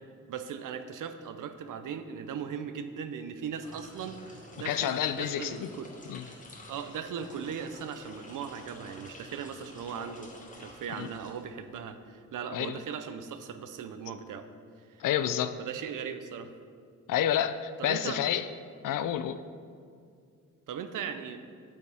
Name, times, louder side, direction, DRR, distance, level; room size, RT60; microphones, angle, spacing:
voice 1, 0.3-5.9 6.7-14.5 14.8-15.0 15.6-16.5 17.8-18.2 20.7-21.5, right 7 dB, 80° right, 9 dB, 0.6 m, -38 dB
sound 1, 3.4-11.8, left 1 dB, 25° left, 1.3 m, -50 dB
voice 2, 4.6-5.7 6.1-6.3 11.0-11.1 12.5-12.8 15.0-15.6 17.1-18.5 18.8-19.4, left 10 dB, 85° left, 12 dB, 0.5 m, -29 dB
8.6 x 8.4 x 3.5 m, 2.2 s
cardioid pair, 105°, 31 cm